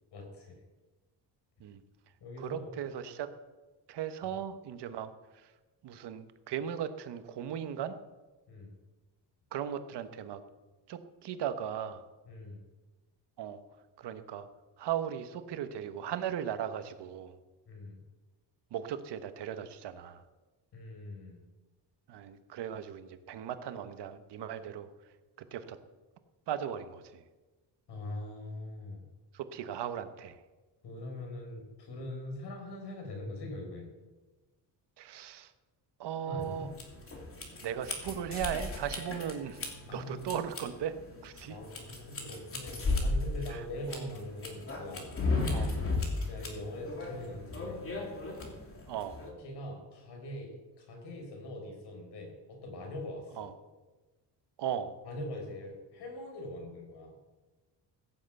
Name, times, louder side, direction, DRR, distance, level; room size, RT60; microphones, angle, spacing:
voice 1, 0.1-0.6 2.2-2.7 8.5-8.7 12.3-12.6 17.7-18.0 20.7-21.4 27.9-29.1 30.8-33.9 36.2-36.7 39.9-40.3 41.5-45.1 46.3-48.1 49.4-53.5 55.0-57.1, left 1 dB, 70° left, 3 dB, 5.0 m, -42 dB
voice 2, 2.4-3.3 3.9-5.5 5.8-8.0 9.5-10.4 10.9-12.0 13.4-13.6 14.0-14.5 14.8-17.3 18.7-20.2 22.1-24.9 25.5-25.8 26.5-27.2 29.3-30.4 35.0-35.5 36.0-36.7 37.6-39.6 39.9-40.9 41.2-41.6 43.5-44.1 45.5-45.7 48.9-49.2 53.4-53.5 54.6-54.9, right 9 dB, 70° right, 10 dB, 1.2 m, -37 dB
sound 1, 36.4-49.3, left 3 dB, 30° left, 2.9 m, -36 dB
15.5 x 7.7 x 8.1 m, 1.2 s
cardioid pair, 135°, 42 cm